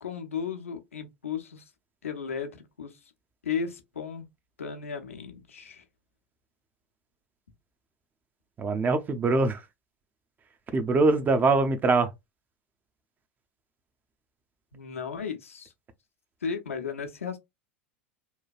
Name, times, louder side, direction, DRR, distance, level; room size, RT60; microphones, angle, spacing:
voice 1, 0.0-1.7 2.0-3.1 3.4-4.3 4.6-5.8 14.7-15.7 16.4-17.4, left 6 dB, 85° left, 0.7 m, -35 dB
voice 2, 8.6-9.6 10.7-12.1, right 3 dB, 25° right, 0.6 m, -23 dB
3.1 x 2.3 x 2.4 m
hypercardioid pair, 90°, 7 cm